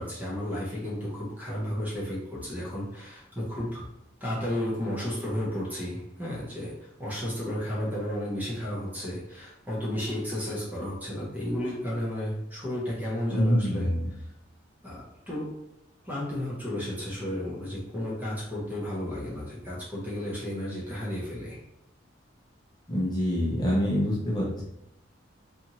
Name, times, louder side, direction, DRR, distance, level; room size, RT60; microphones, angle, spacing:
voice 1, 0.0-3.8 4.2-13.9 14.8-15.5 16.0-21.6, left 1 dB, 10° right, -6 dB, 0.8 m, -33 dB
voice 2, 13.3-14.1 22.9-24.6, equal, 20° left, -6 dB, 0.7 m, -26 dB
2.7 x 2.5 x 2.9 m, 0.83 s
head